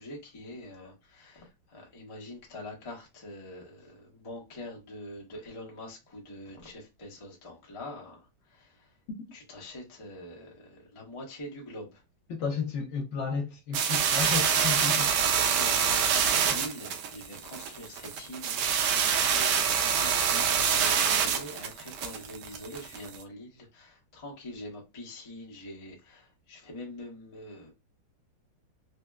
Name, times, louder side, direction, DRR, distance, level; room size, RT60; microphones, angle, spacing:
voice 1, 0.0-8.2 8.5-8.7 9.3-11.9 15.0-18.9 19.3-27.7, left 1 dB, 35° left, 0.5 m, -44 dB
voice 2, 12.3-15.1 16.5-16.6, left 6 dB, 70° left, 1.2 m, -33 dB
sound 1, 13.7-23.2, right 7 dB, 85° right, 1.6 m, -26 dB
4.2 x 2.1 x 2.3 m
omnidirectional pair, 2.4 m